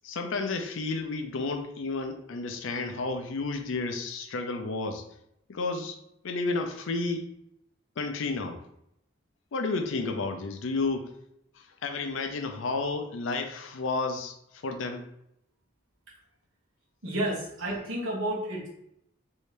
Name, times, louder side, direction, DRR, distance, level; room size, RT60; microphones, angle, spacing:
voice 1, 0.0-5.1 5.5-6.0 6.2-7.3 8.0-8.6 9.5-11.2 11.5-15.1, left 3 dB, 70° left, 5 dB, 0.5 m, -31 dB
voice 2, 17.0-18.7, right 1 dB, 80° right, -4 dB, 1.3 m, -31 dB
3.1 x 2.7 x 3.3 m, 0.76 s
head